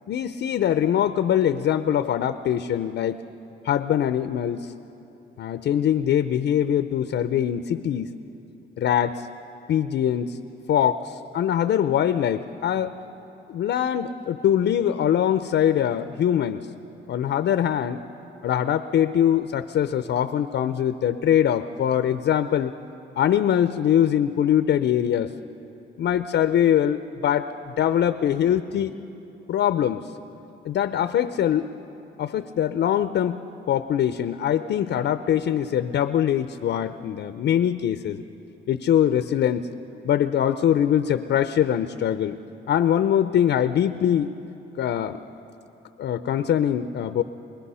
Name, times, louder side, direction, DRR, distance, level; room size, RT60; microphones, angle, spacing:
voice 1, 0.1-3.2 3.6-4.7 5.4-8.1 8.8-9.3 9.7-10.4 10.7-12.9 13.5-16.7 17.1-18.0 18.4-22.7 23.2-25.3 26.0-29.0 29.5-30.1 30.6-31.7 32.2-33.4 33.7-38.2 38.7-39.7 40.0-42.4 42.7-44.3 44.8-45.2 46.0-47.2, left 10 dB, 65° left, 10 dB, 0.7 m, -23 dB
23.0 x 20.5 x 5.6 m, 2.9 s
cardioid pair, 90°, 20 cm